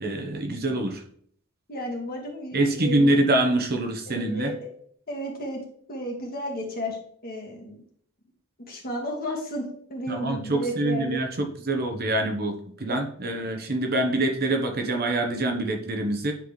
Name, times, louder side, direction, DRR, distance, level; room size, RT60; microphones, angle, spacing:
voice 1, 0.0-1.0 2.5-4.5 10.1-16.3, right 1 dB, 45° right, 4 dB, 1.0 m, -25 dB
voice 2, 1.7-3.2 4.1-4.6 5.1-5.6 5.9-7.0 7.2-7.8 8.7-11.2 12.9-13.0, equal, 45° left, -1 dB, 1.8 m, -33 dB
10.0 x 4.1 x 3.2 m, 0.62 s
head